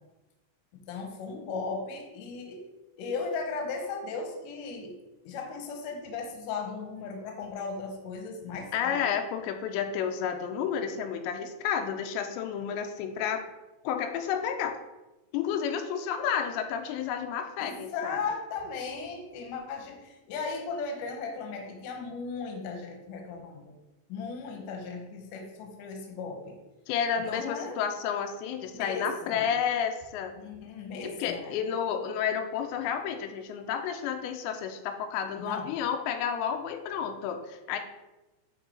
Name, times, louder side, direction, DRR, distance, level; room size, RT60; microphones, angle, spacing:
voice 1, 0.9-2.6 3.0-4.9 5.2-9.1 17.6-23.8 24.1-26.6 27.3-27.8 28.7-29.5 30.4-31.5 35.4-35.8, left 4 dB, 70° left, 3 dB, 2.1 m, -36 dB
voice 2, 8.7-13.4 13.8-14.8 15.3-18.2 26.9-30.3 31.0-37.8, left 8 dB, 90° left, 6 dB, 2.9 m, -31 dB
9.3 x 3.8 x 4.3 m, 1.0 s
omnidirectional pair, 5.0 m